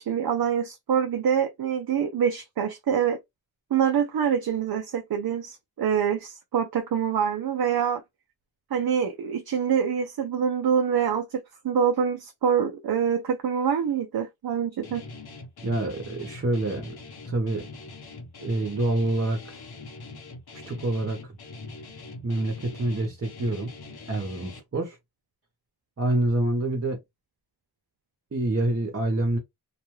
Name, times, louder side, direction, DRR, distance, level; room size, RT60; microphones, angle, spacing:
voice 1, 0.0-3.2 3.7-8.0 8.7-15.0, right 7 dB, 65° right, 0.6 m, -25 dB
Guitar, 14.8-24.6, left 3 dB, 65° left, 0.9 m, -43 dB
voice 2, 15.6-17.0 17.3-17.7 18.4-19.6 20.7-21.3 22.2-23.7 24.1-25.0 26.0-27.0 28.3-29.4, right 2 dB, 35° right, 0.9 m, -27 dB
2.4 x 2.3 x 3.1 m
cardioid pair, 65°, 40 cm